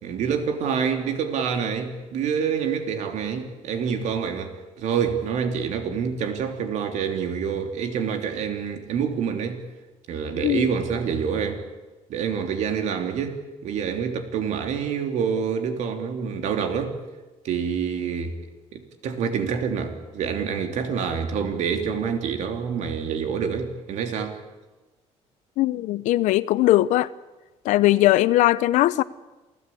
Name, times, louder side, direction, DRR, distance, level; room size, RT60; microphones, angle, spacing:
voice 1, 0.0-9.6 10.1-11.6 12.1-17.0 17.4-18.3 18.7-24.4, right 7 dB, 70° right, 3.1 m, -27 dB
voice 2, 25.6-27.1 27.6-29.0, left 16 dB, 85° left, 0.8 m, -19 dB
27.5 x 16.5 x 8.6 m
cardioid pair, 130°, 12 cm